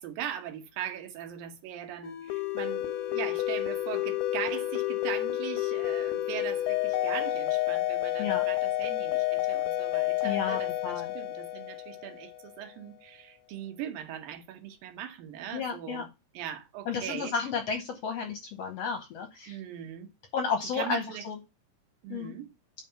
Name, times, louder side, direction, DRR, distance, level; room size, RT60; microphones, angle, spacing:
voice 1, 0.0-16.1 16.3-17.3 19.5-20.1 20.7-21.3 22.0-22.5, right 10 dB, 85° right, 2.8 m, -40 dB
sound 1, 2.0-12.4, left 14 dB, 85° left, 2.2 m, -30 dB
voice 2, 10.2-11.1 15.5-16.0 16.8-19.6 20.3-21.4 22.1-22.3, left 6 dB, 65° left, 1.6 m, -32 dB
8.4 x 3.7 x 5.5 m
omnidirectional pair, 3.9 m